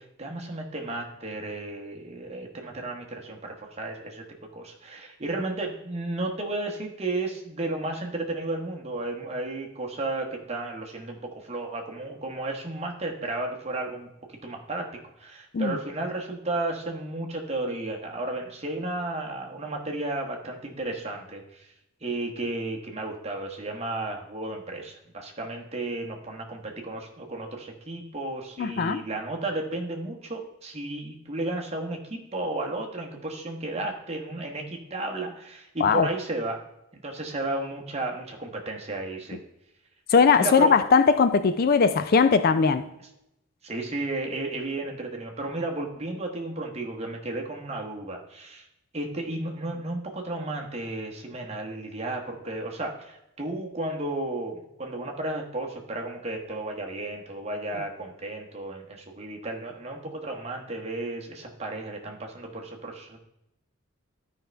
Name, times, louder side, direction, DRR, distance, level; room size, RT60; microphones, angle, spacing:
voice 1, 0.0-4.2 4.5-14.1 14.4-21.7 22.0-36.6 36.9-39.4 40.4-40.7 43.6-48.7 48.9-63.2, right 2 dB, 30° right, 1.2 m, -33 dB
voice 2, 28.6-29.0 35.8-36.1 40.1-42.9, left 5 dB, 45° left, 0.4 m, -20 dB
12.5 x 5.3 x 3.4 m
head